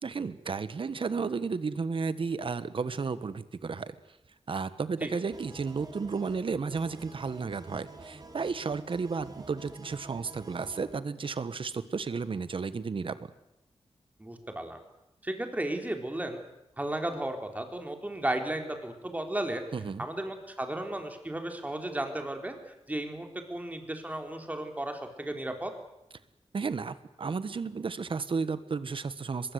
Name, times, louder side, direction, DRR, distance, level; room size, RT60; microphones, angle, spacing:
voice 1, 0.0-3.9 4.5-13.3 19.7-20.1 26.5-29.5, right 5 dB, 60° right, 14 dB, 1.4 m, -33 dB
sound 1, 5.3-10.9, right 3 dB, 40° right, 3.2 m, -48 dB
voice 2, 14.2-14.8 15.2-16.4 16.8-19.6 20.0-22.6 22.9-25.7, right 1 dB, 15° right, 4 dB, 3.8 m, -34 dB
23.5 x 22.0 x 8.2 m, 0.88 s
wide cardioid pair, 120°, 10 cm